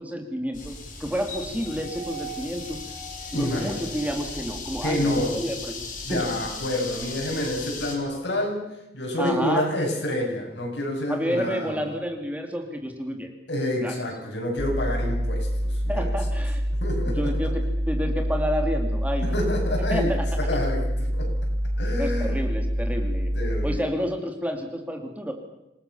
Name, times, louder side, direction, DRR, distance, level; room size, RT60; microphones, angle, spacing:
voice 1, 0.0-2.8 3.3-6.2 9.2-9.7 11.1-13.3 13.8-13.9 15.9-16.6 17.2-19.4 19.9-20.2 22.0-23.3 23.6-25.3, equal, 10° right, 4 dB, 2.4 m, -30 dB
sound 1, 0.5-8.0, left 3 dB, 45° left, 5.2 m, -37 dB
voice 2, 3.3-3.8 4.8-5.4 6.0-8.7 8.9-11.8 13.5-16.1 16.8-17.4 19.2-21.3 21.8-22.3 23.3-23.8, left 1 dB, 80° left, 0 dB, 7.9 m, -28 dB
sound 2, 14.6-23.8, equal, 75° right, 1.7 m, -26 dB
27.0 x 18.5 x 7.1 m, 0.92 s
head